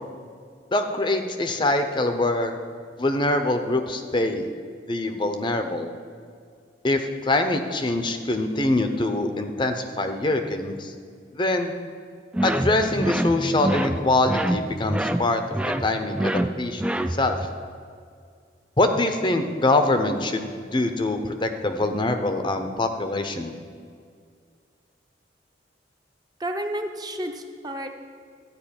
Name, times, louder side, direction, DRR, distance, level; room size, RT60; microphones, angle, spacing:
voice 1, 0.7-2.5 3.0-4.5 4.9-5.9 6.8-10.9 11.3-11.7 12.4-15.4 15.8-17.4 18.8-23.5, left 2 dB, 25° left, 6 dB, 0.6 m, -24 dB
sound 1, 12.3-17.5, right 1 dB, 5° right, 0.3 m, -26 dB
voice 2, 26.4-27.9, right 1 dB, 20° right, 4 dB, 0.7 m, -31 dB
12.5 x 5.0 x 8.8 m, 2.1 s
head